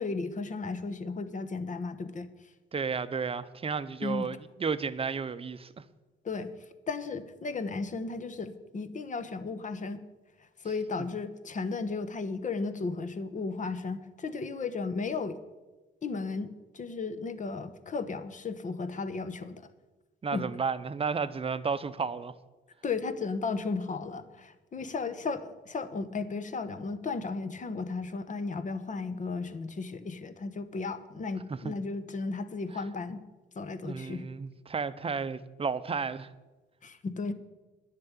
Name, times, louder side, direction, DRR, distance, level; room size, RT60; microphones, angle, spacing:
voice 1, 0.0-2.3 4.0-4.3 6.2-6.5 6.9-10.0 10.6-15.4 16.0-19.7 20.3-20.5 22.8-33.2 33.6-34.3 36.8-37.3, left 4 dB, 40° left, 1.0 m, -35 dB
voice 2, 2.7-5.8 20.2-22.3 31.5-31.8 33.8-36.3, right 5 dB, 30° right, 0.7 m, -32 dB
10.5 x 6.8 x 8.9 m
cardioid pair, 90°, 20 cm